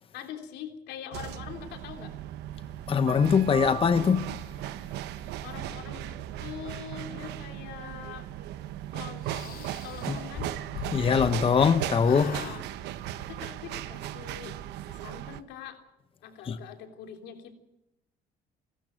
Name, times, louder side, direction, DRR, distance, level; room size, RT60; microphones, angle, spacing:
voice 1, 0.1-2.1 5.4-8.3 8.9-10.5 12.3-12.6 13.3-14.6 14.9-15.8 16.2-17.6, left 9 dB, 85° left, 3.4 m, -43 dB
sound 1, 1.1-15.4, right 13 dB, 85° right, 1.0 m, -37 dB
voice 2, 2.9-4.3 10.1-10.2 10.9-12.4 16.5-16.6, left 6 dB, 35° left, 0.9 m, -22 dB
sound 2, 9.2-11.7 12.0-12.6, left 7 dB, 65° left, 4.5 m, -40 dB
28.5 x 13.0 x 7.6 m
cardioid pair, 110°, 17 cm